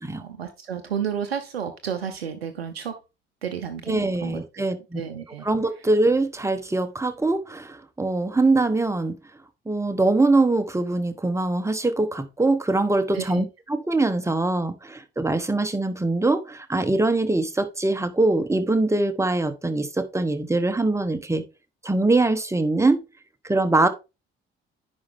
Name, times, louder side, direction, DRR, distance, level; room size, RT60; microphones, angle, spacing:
voice 1, 0.0-3.0 3.4-4.4 4.9-5.5 13.1-13.4, right 8 dB, 85° right, 0.6 m, -31 dB
voice 2, 3.9-5.0 5.4-9.2 9.7-21.4 21.8-23.0 23.4-23.9, right 2 dB, 10° right, 1.2 m, -23 dB
10.0 x 4.3 x 3.5 m
figure-of-eight pair, 40°, 30 cm